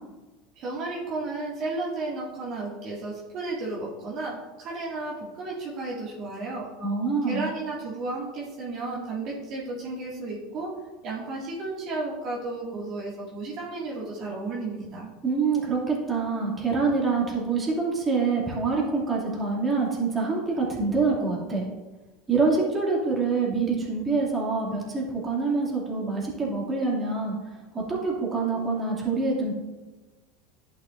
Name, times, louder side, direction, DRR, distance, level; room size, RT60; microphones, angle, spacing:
voice 1, 0.6-6.7 7.3-10.7 11.0-15.1, right 2 dB, 50° right, -4 dB, 2.0 m, -33 dB
voice 2, 6.8-7.4 15.2-21.7 22.3-27.3 27.9-29.5, right 4 dB, 20° right, -4 dB, 2.3 m, -26 dB
11.0 x 6.3 x 2.5 m, 1.2 s
supercardioid pair, 105°, 0 cm